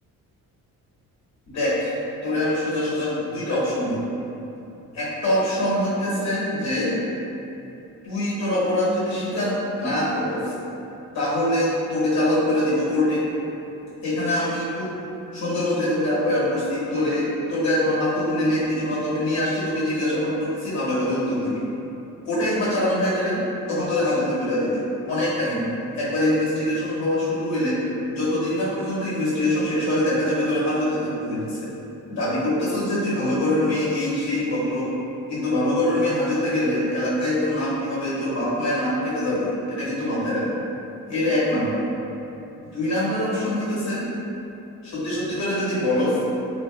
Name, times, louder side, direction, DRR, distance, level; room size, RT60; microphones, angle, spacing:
voice 1, 1.5-1.9 2.2-4.0 4.9-6.9 8.0-10.5 11.1-13.3 14.0-14.9 15.3-21.6 22.3-23.4 23.7-24.8 25.1-27.8 28.1-31.7 32.1-34.9 35.3-40.5 41.1-41.8 42.7-44.1 44.8-46.2, left 1 dB, 50° left, -9 dB, 1.2 m, -24 dB
3.5 x 2.5 x 2.4 m, 2.9 s
cardioid pair, 160°, 34 cm